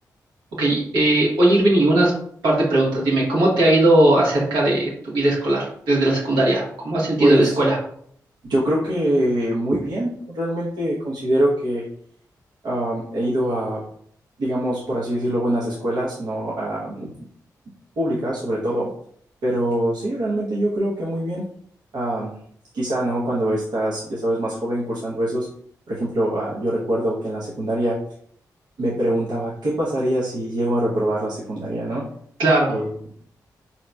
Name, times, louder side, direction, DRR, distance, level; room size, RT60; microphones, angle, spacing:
voice 1, 0.6-2.1 2.4-7.8 32.4-32.8, right 1 dB, 85° right, -6 dB, 1.1 m, -18 dB
voice 2, 7.2-7.6 8.4-11.8 12.6-13.8 14.4-17.1 18.0-18.9 19.4-21.4 21.9-22.3 22.7-25.5 25.9-27.9 28.8-32.0 32.7-32.9, right 1 dB, 70° right, -6 dB, 0.8 m, -24 dB
3.9 x 2.8 x 2.3 m, 0.64 s
supercardioid pair, 50°, 7 cm